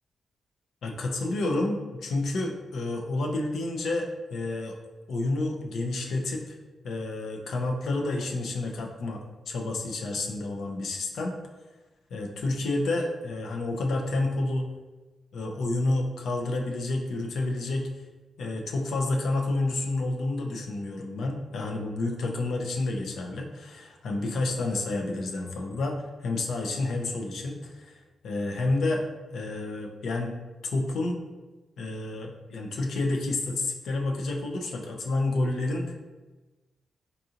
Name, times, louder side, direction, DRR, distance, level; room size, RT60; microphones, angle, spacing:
voice 1, 0.8-4.8 5.1-6.6 6.8-11.3 12.1-14.7 15.3-17.9 18.4-28.0 28.2-29.0 29.3-30.3 30.6-31.2 31.8-35.9, left 2 dB, 75° left, 1 dB, 0.5 m, -29 dB
3.9 x 2.4 x 2.8 m, 1.2 s
wide cardioid pair, 170°, 0 cm